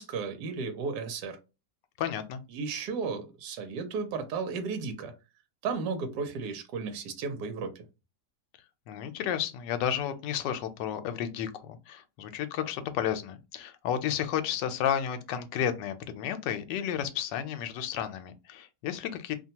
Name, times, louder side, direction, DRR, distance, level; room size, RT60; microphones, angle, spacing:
voice 1, 0.0-1.4 2.5-5.1 5.6-7.9, right 5 dB, 75° right, 1.2 m, -34 dB
voice 2, 2.0-2.4 8.9-19.3, left 9 dB, 85° left, 1.2 m, -32 dB
2.9 x 2.2 x 2.7 m
omnidirectional pair, 1.9 m